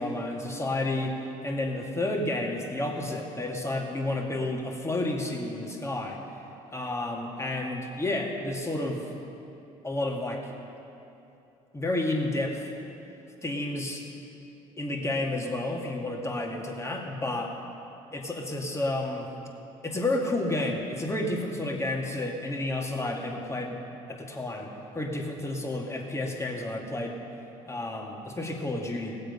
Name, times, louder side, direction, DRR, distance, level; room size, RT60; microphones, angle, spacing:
voice 1, 0.0-6.2 6.7-9.1 9.8-10.5 11.7-12.7 13.4-14.0 14.8-17.6 18.1-19.3 19.8-23.8 24.1-27.2 27.7-29.2, left 2 dB, 15° left, 0 dB, 2.4 m, -31 dB
18.5 x 7.8 x 5.5 m, 2.9 s
hypercardioid pair, 60°, 18 cm